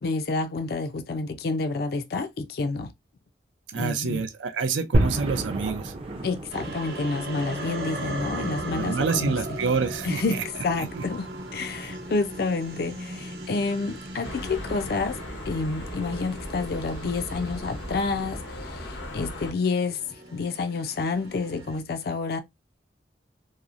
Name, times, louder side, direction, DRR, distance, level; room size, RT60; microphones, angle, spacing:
voice 1, 0.0-2.9 3.7-4.3 6.2-9.4 10.0-10.4 10.6-15.2 15.5-20.0 20.3-22.4, left 3 dB, 55° left, 0.4 m, -29 dB
voice 2, 3.7-5.9 8.4-8.5 8.7-10.4 10.8-11.0 11.8-11.9, right 5 dB, 90° right, 0.5 m, -28 dB
sound 1, 4.9-15.2, right 1 dB, 30° right, 0.5 m, -33 dB
sound 2, 6.5-21.8, right 2 dB, 60° right, 0.8 m, -39 dB
sound 3, 14.2-19.5, left 1 dB, 85° left, 0.7 m, -37 dB
2.8 x 2.0 x 2.4 m
head